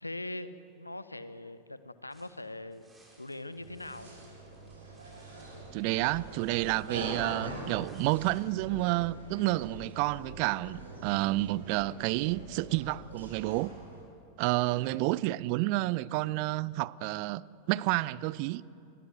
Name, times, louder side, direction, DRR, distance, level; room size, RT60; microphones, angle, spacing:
voice 1, 0.0-2.9 3.2-4.1, left 2 dB, 85° left, 1.1 m, -41 dB
sound 1, 2.1-8.5, right 2 dB, 15° right, 7.3 m, -63 dB
sound 2, 3.6-14.0, right 2 dB, 70° right, 7.2 m, -44 dB
voice 2, 5.7-13.7 14.4-17.4 17.7-18.6, right 19 dB, 45° right, 0.6 m, -30 dB
27.5 x 22.0 x 7.9 m
figure-of-eight pair, 90°, 0 cm